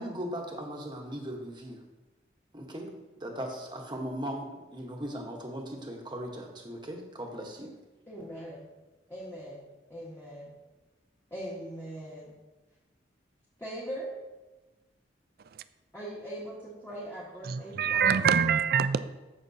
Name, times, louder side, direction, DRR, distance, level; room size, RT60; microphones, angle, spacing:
voice 1, 0.0-1.8 2.5-2.9 3.2-7.7, equal, 25° right, 1.2 m, -38 dB
voice 2, 8.1-8.7 9.1-10.5 11.3-12.3 13.6-14.1 15.9-18.2, equal, 10° left, 1.4 m, -40 dB
voice 3, 17.4-19.0, right 7 dB, 55° right, 0.4 m, -25 dB
14.0 x 5.9 x 2.8 m
head